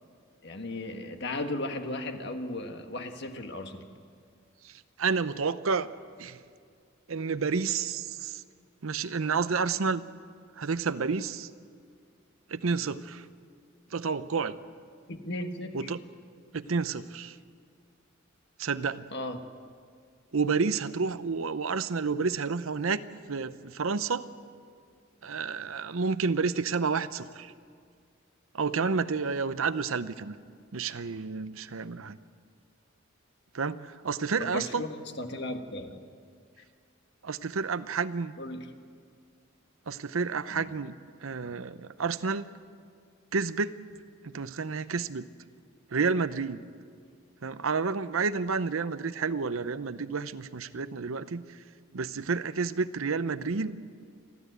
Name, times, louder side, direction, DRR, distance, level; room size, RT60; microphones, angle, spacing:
voice 1, 0.4-3.8 15.1-15.9 19.1-19.4 34.4-36.0 38.4-38.7 40.5-40.7 41.4-41.6, left 2 dB, 55° left, 6 dB, 1.5 m, -36 dB
voice 2, 4.6-5.9 6.2-6.4 7.1-8.4 8.8-10.0 10.6-11.5 12.5-13.3 13.9-14.6 15.7-16.0 16.5-17.4 18.6-19.1 20.3-24.3 25.2-27.5 28.5-30.4 30.7-32.2 33.5-34.8 37.2-38.3 39.9-40.9 41.2-42.5 43.3-43.8 44.2-45.3 45.9-46.7 47.4-51.6 51.9-53.8, right 5 dB, 75° right, 13 dB, 0.7 m, -30 dB
29.5 x 12.5 x 8.1 m, 2.1 s
head